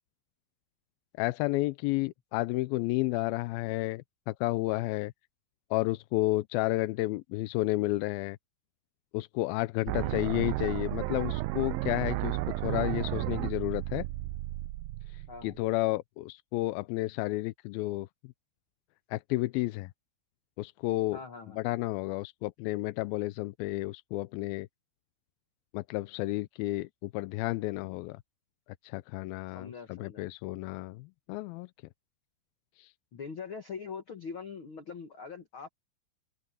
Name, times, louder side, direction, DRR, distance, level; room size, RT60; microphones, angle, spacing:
voice 1, 1.2-5.1 5.7-8.4 9.1-14.0 15.4-18.1 19.1-19.9 20.6-21.2 21.6-24.7 25.7-28.2 28.8-31.7 32.8-32.9, left 19 dB, 80° left, 2.2 m, -31 dB
voice 2, 9.9-10.4 15.3-15.5 21.1-21.6 29.5-30.2 33.1-35.7, left 5 dB, 65° left, 1.3 m, -43 dB
sound 1, 9.9-15.8, right 18 dB, 85° right, 2.1 m, -33 dB
open air
omnidirectional pair, 4.7 m